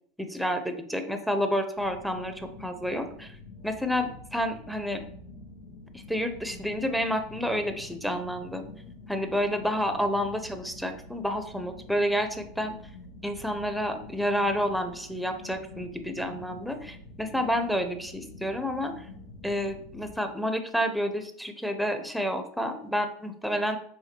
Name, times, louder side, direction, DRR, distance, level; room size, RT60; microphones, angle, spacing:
voice 1, 0.2-3.4 3.6-5.0 5.9-8.6 9.1-12.7 13.2-19.1 19.4-23.8, equal, ahead, 7 dB, 0.8 m, -29 dB
sound 1, 1.8-20.2, left 2 dB, 85° left, 1.1 m, -47 dB
5.7 x 3.6 x 4.5 m, 0.65 s
hypercardioid pair, 100°, 0 cm